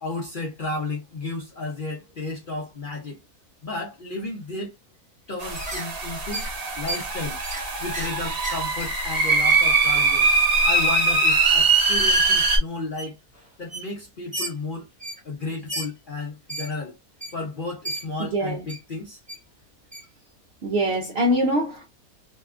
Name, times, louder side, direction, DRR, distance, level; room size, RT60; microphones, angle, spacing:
voice 1, 0.0-3.2 3.6-4.7 5.3-6.5 6.8-7.4 7.8-10.3 10.6-13.2 13.6-14.9 15.2-16.9 17.3-19.2, left 2 dB, 55° left, 0.6 m, -33 dB
sound 1, 5.4-5.9 6.3-6.5 6.9-7.0 7.4-7.6 7.9-8.1 8.4-9.0 9.5-9.6 10.3-10.4 10.8-10.9 11.7-12.5 13.0-13.1 13.3-13.4 13.7-13.9 14.3-14.5 15.0-15.2 15.7-15.9 16.5-16.7 17.2-17.3 17.8-18.0 18.7-18.8 19.3-19.4 19.9-20.0, right 1 dB, 10° right, 0.6 m, -33 dB
sound 2, 5.4-12.6, right 3 dB, 45° right, 0.9 m, -21 dB
voice 2, 18.2-18.7 20.6-21.9, equal, 70° right, 0.6 m, -24 dB
2.7 x 2.2 x 2.4 m
omnidirectional pair, 1.6 m